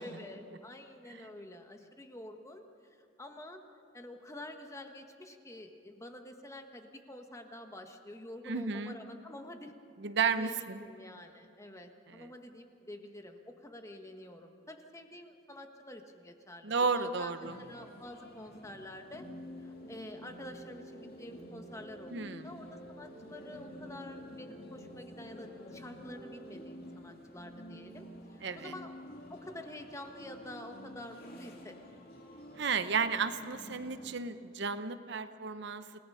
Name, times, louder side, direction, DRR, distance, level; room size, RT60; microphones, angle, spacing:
voice 1, 0.0-3.6 3.9-9.7 10.4-19.3 19.6-28.9 29.3-31.8, left 1 dB, 15° left, 5 dB, 1.4 m, -48 dB
voice 2, 8.5-9.0 10.0-10.8 12.2-12.3 16.6-17.5 22.1-22.5 28.4-28.7 32.6-36.0, right 5 dB, 65° right, 10 dB, 0.8 m, -33 dB
sound 1, 17.4-34.1, equal, 50° left, 2.3 m, -49 dB
28.5 x 18.0 x 5.6 m, 2.5 s
head